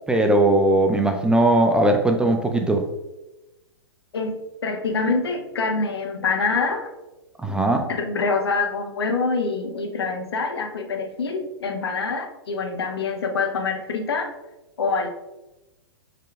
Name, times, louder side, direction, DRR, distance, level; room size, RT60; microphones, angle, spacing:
voice 1, 0.1-2.8 7.4-7.9, right 1 dB, 5° right, 4 dB, 0.3 m, -19 dB
voice 2, 4.6-6.9 7.9-14.3 14.8-15.1, left 4 dB, 70° left, 5 dB, 0.8 m, -25 dB
5.0 x 4.4 x 2.4 m, 1.0 s
figure-of-eight pair, 110°, 13 cm